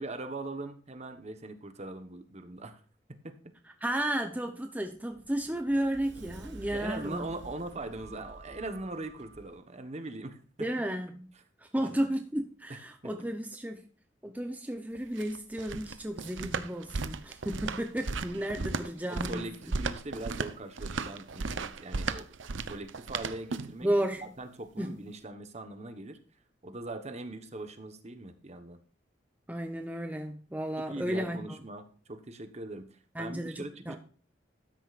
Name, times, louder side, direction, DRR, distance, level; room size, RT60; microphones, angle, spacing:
voice 1, 0.0-2.8 3.2-3.3 6.7-10.7 11.8-12.1 12.7-12.8 13.0-13.1 19.1-22.3 22.7-23.9 24.4-26.2 26.6-28.8 30.8-34.0, right 2 dB, 35° right, 1.2 m, -41 dB
voice 2, 3.8-7.3 10.6-11.3 11.6-13.8 14.2-19.4 23.8-24.2 24.8-25.0 29.5-31.4 33.1-34.0, right 1 dB, 10° right, 0.8 m, -33 dB
Sliding door, 4.7-9.6, right 2 dB, 70° right, 1.3 m, -49 dB
footsteps flipflops, 14.9-23.8, right 4 dB, 90° right, 0.7 m, -35 dB
13.0 x 9.9 x 2.5 m
head